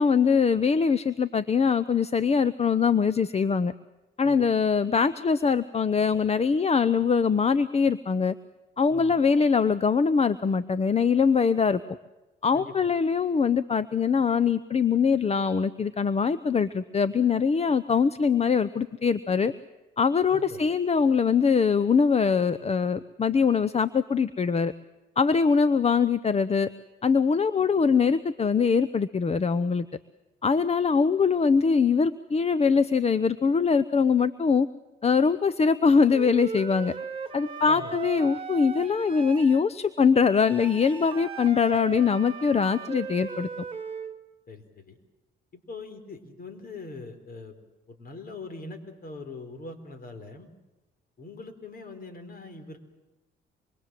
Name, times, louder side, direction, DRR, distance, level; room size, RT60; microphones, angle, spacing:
voice 1, 0.0-3.7 4.2-8.3 8.8-11.8 12.4-19.5 20.0-24.7 25.2-26.7 27.0-29.9 30.4-34.7 35.0-36.9 37.3-43.5, left 5 dB, 30° left, 14 dB, 0.8 m, -23 dB
voice 2, 20.3-20.6 37.6-38.0 44.5-45.0 45.5-47.6 47.9-50.5 51.2-52.8, left 3 dB, 50° left, 8 dB, 4.3 m, -42 dB
Wind instrument woodwind instrument, 36.1-39.6 40.4-44.2, right 5 dB, 25° right, 1.9 m, -37 dB
26.0 x 23.0 x 7.7 m, 1.1 s
cardioid pair, 90°, 20 cm